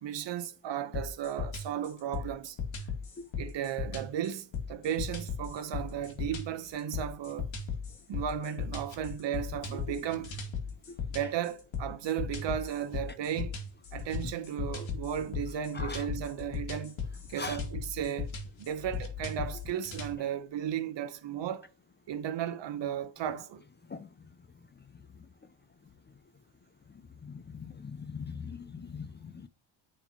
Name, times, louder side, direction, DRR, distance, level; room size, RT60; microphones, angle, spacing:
voice 1, 0.0-2.6 3.4-7.5 8.1-10.4 11.1-13.6 13.9-17.0 17.3-21.7 22.1-23.6, right 9 dB, 60° right, 1.0 m, -35 dB
sound 1, 0.9-20.1, left 5 dB, 65° left, 2.2 m, -37 dB
voice 2, 27.2-29.5, left 5 dB, 20° left, 0.5 m, -41 dB
9.0 x 4.4 x 2.9 m
cardioid pair, 85°, 50 cm